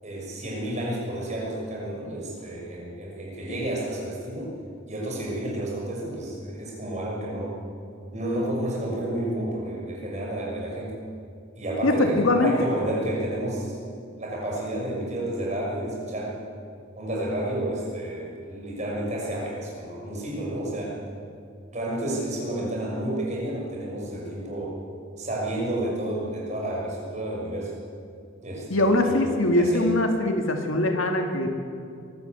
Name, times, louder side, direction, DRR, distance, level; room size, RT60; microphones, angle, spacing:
voice 1, 0.0-4.6 4.9-7.6 8.1-11.0 11.6-13.8 14.2-16.5 17.0-21.0 21.7-24.8 25.2-27.7 28.4-29.9, right 1 dB, 35° right, -3 dB, 6.3 m, -31 dB
voice 2, 11.8-12.7 28.7-31.5, left 2 dB, 70° left, 4 dB, 2.3 m, -22 dB
23.0 x 14.0 x 8.4 m, 2.3 s
head